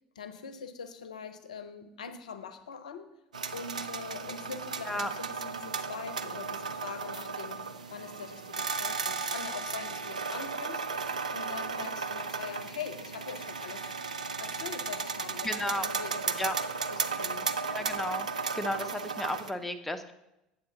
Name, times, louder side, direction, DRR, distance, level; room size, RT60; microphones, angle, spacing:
voice 1, 0.2-3.1 3.5-7.6 7.9-10.8 11.3-13.9 14.4-16.5 16.9-17.5, left 6 dB, 80° left, 10 dB, 0.5 m, -43 dB
sound 1, 3.3-19.5, right 5 dB, 85° right, 0.4 m, -35 dB
voice 2, 15.4-15.8 16.4-16.5 17.7-18.3 18.5-20.1, left 1 dB, 5° left, 6 dB, 0.7 m, -33 dB
8.0 x 3.9 x 6.8 m, 0.90 s
figure-of-eight pair, 70°, 4 cm